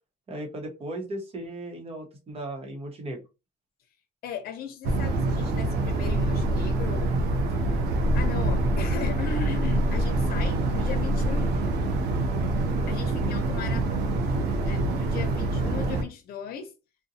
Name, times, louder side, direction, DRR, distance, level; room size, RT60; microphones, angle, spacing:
voice 1, 0.3-3.2, right 1 dB, 35° right, 0.9 m, -36 dB
voice 2, 4.2-7.1 7.5-11.6 12.9-13.9 14.6-16.7, left 7 dB, 65° left, 0.7 m, -37 dB
sound 1, 4.8-16.0, right 2 dB, 75° right, 0.6 m, -25 dB
2.6 x 2.2 x 2.7 m
cardioid pair, 110°, 17 cm